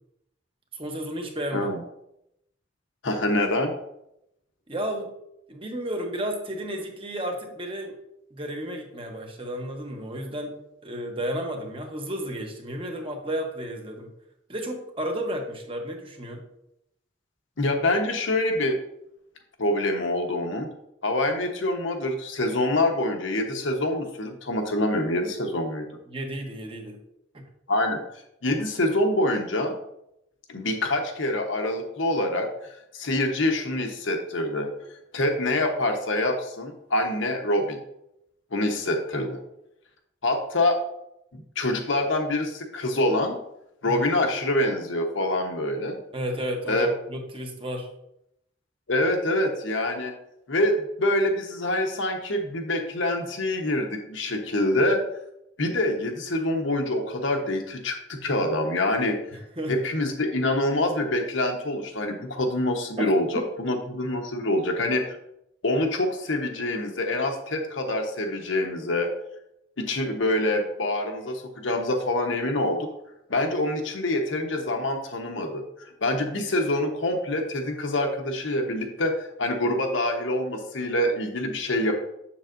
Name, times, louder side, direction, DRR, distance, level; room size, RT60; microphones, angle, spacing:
voice 1, 0.7-1.7 4.7-5.1 5.5-8.0 8.3-10.5 10.8-14.1 14.5-16.4 26.1-27.0 43.8-44.2 46.1-47.9 59.3-59.7 63.0-63.1 63.3-63.5, equal, 30° right, 3 dB, 1.0 m, -32 dB
voice 2, 3.0-3.7 17.6-18.8 19.6-20.7 21.0-25.9 27.7-28.0 28.4-29.8 30.5-32.5 32.9-34.7 35.1-37.8 38.5-39.4 40.2-40.8 41.3-43.4 43.8-46.0 46.7-46.9 48.9-50.1 50.5-55.0 55.6-59.2 59.7-65.2 65.6-69.1 69.8-72.9 73.3-75.6 76.0-82.0, left 1 dB, 85° left, 3 dB, 1.1 m, -25 dB
7.3 x 7.2 x 2.6 m, 0.81 s
head